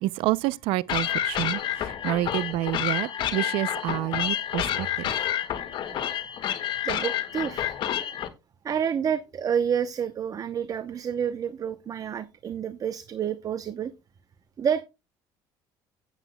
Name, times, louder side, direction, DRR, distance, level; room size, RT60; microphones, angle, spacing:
voice 1, 0.0-5.1, right 16 dB, 75° right, 0.4 m, -28 dB
sound 1, 0.9-8.3, left 11 dB, 60° left, 1.7 m, -29 dB
voice 2, 6.8-7.8 8.6-13.9 14.6-14.8, right 8 dB, 40° right, 0.8 m, -29 dB
15.5 x 8.2 x 2.2 m
supercardioid pair, 95°, 9 cm